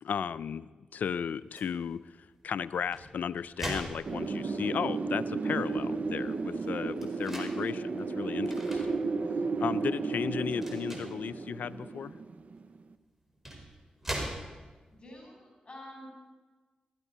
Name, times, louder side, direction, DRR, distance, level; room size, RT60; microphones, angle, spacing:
voice 1, 0.0-9.1 9.6-12.1, left 7 dB, 75° left, 16 dB, 0.4 m, -35 dB
sound 1, 1.5-1.8 2.7-4.7 5.3-5.4 5.6-7.6 8.4-8.9 9.4-9.6 10.5-11.2 12.6-12.7 13.3-14.9, right 1 dB, 10° right, 4.6 m, -41 dB
Wind, 4.1-12.8, right 4 dB, 60° right, 0.8 m, -33 dB
voice 2, 14.9-16.1, left 1 dB, 35° left, 0 dB, 6.6 m, -48 dB
17.0 x 13.5 x 5.5 m, 1.3 s
cardioid pair, 50°, 3 cm